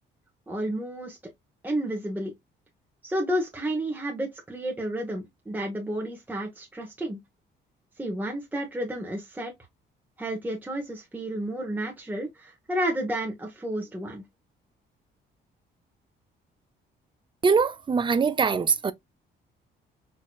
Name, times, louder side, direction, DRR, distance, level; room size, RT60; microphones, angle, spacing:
voice 1, 0.5-1.2 1.6-2.3 3.0-7.2 8.0-9.5 10.2-14.2, right 1 dB, 10° right, 1.0 m, -31 dB
voice 2, 17.4-18.9, right 5 dB, 25° right, 0.5 m, -22 dB
4.5 x 2.8 x 2.3 m
cardioid pair, 90°, 20 cm